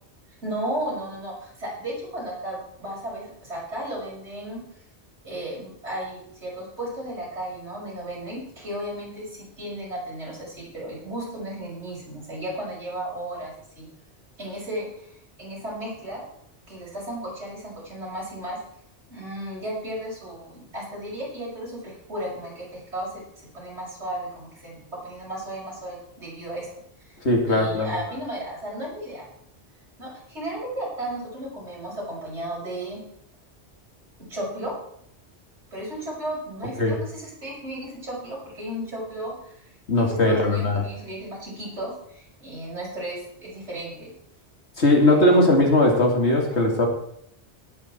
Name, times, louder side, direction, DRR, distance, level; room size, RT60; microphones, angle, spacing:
voice 1, 0.4-4.6 5.2-13.9 14.4-15.1 15.4-16.2 16.7-18.6 19.1-26.7 27.0-27.2 27.4-29.3 30.0-33.0 34.3-34.7 35.7-44.1 45.0-45.4, right 1 dB, 85° right, -4 dB, 6.3 m, -34 dB
voice 2, 27.2-27.9 36.8-37.0 39.9-40.8 44.8-46.9, left 1 dB, 75° left, 2 dB, 2.9 m, -19 dB
18.5 x 8.7 x 4.5 m, 0.71 s
omnidirectional pair, 1.1 m